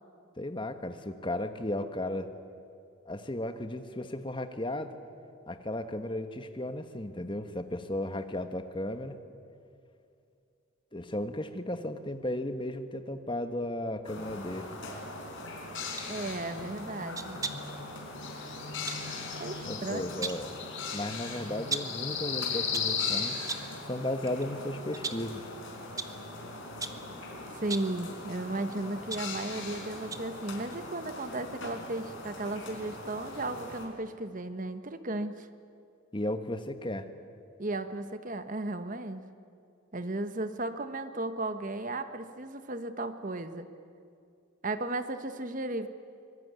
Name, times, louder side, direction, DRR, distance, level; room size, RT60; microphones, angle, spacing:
voice 1, 0.4-2.3 3.1-5.0 5.5-9.2 10.9-14.7 19.6-20.5 20.9-23.4 23.9-25.5 36.1-37.1, left 1 dB, 25° left, 8 dB, 1.2 m, -35 dB
sound 1, 14.0-33.9, left 4 dB, 65° left, 4.6 m, -38 dB
sound 2, 15.8-16.1 17.1-17.8 18.9-19.1 20.0-20.5 21.7-22.0 22.5-23.0 23.5-23.8 24.3-24.4 24.9-25.4 26.0-26.2 26.8-27.1 27.6-28.0 28.7-29.8 30.1-30.4 30.7-30.8, right 4 dB, 15° right, 1.0 m, -38 dB
voice 2, 16.1-17.4 19.4-20.3 27.5-35.5 37.6-39.2 39.9-43.7 44.6-45.9, right 2 dB, 40° right, 10 dB, 1.2 m, -35 dB
25.0 x 20.0 x 9.5 m, 2.5 s
head